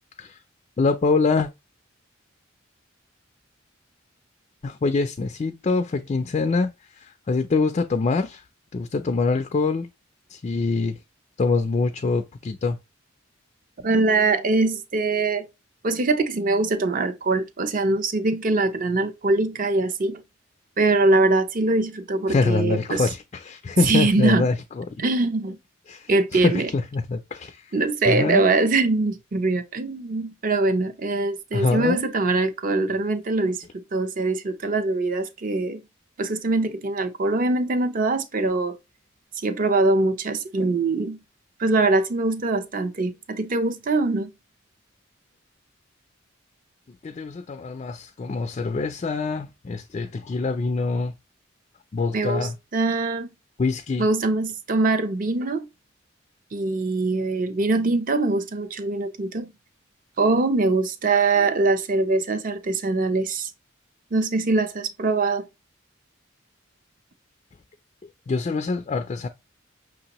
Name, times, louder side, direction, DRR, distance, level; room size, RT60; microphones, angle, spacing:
voice 1, 0.8-1.5 4.6-8.4 8.7-9.9 10.3-11.0 11.4-12.8 22.3-24.8 25.9-27.7 28.0-28.4 31.5-32.0 47.0-51.1 51.9-52.6 53.6-54.1 68.3-69.3, left 3 dB, 35° left, 0.3 m, -24 dB
voice 2, 13.8-15.5 15.8-20.2 20.8-23.1 23.8-24.5 25.0-25.6 26.1-26.7 27.7-33.6 33.9-35.8 36.2-38.8 39.4-41.2 41.6-44.3 52.1-53.3 54.0-55.7 56.5-59.5 60.2-63.5 64.1-65.5, right 3 dB, 40° right, 0.5 m, -23 dB
5.8 x 2.7 x 2.9 m
head